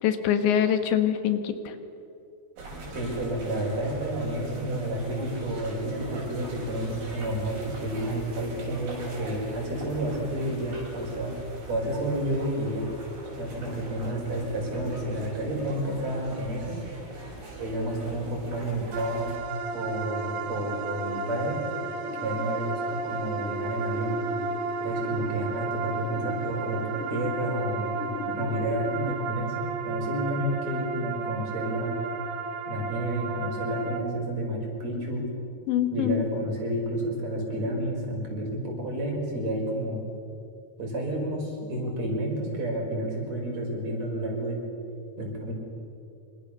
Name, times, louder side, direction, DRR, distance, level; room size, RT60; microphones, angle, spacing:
voice 1, 0.0-1.7 35.7-36.3, left 9 dB, 85° left, 8 dB, 3.9 m, -24 dB
sound 1, 2.6-19.4, right 2 dB, 60° right, 8.7 m, -41 dB
voice 2, 2.9-11.3 11.7-12.9 13.4-16.8 17.6-19.3 19.7-21.6 22.2-24.1 24.8-26.8 27.1-27.9 28.3-32.0 32.7-35.2 35.9-40.0 40.8-44.6 45.2-45.5, right 1 dB, 40° right, 0 dB, 6.7 m, -30 dB
sound 2, 18.9-34.0, right 5 dB, 90° right, 3.9 m, -33 dB
sound 3, 20.6-29.2, left 6 dB, 55° left, 1.7 m, -40 dB
27.5 x 25.5 x 6.9 m, 2.7 s
omnidirectional pair, 5.1 m